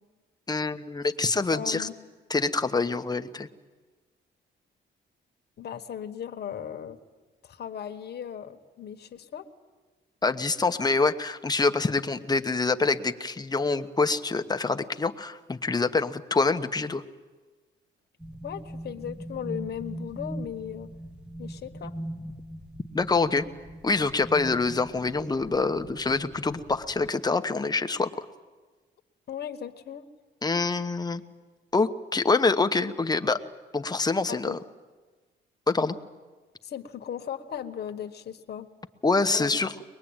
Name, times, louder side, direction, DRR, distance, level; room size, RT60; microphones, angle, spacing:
voice 1, 0.5-1.9 2.3-3.5 10.2-17.0 22.9-23.4 23.8-28.2 30.4-31.2 31.7-33.4 33.7-34.6 35.7-36.0 39.0-39.7, left 3 dB, 20° left, 8 dB, 1.2 m, -26 dB
voice 2, 1.5-1.9 5.6-7.0 7.4-9.5 18.4-20.9 21.4-21.9 29.3-30.0 34.3-34.6 36.6-38.7 39.3-39.6, left 9 dB, 55° left, 6 dB, 1.5 m, -37 dB
sound 1, 18.2-27.1, right 1 dB, 5° right, 1.4 m, -41 dB
23.5 x 21.0 x 8.9 m, 1.3 s
cardioid pair, 90°, 20 cm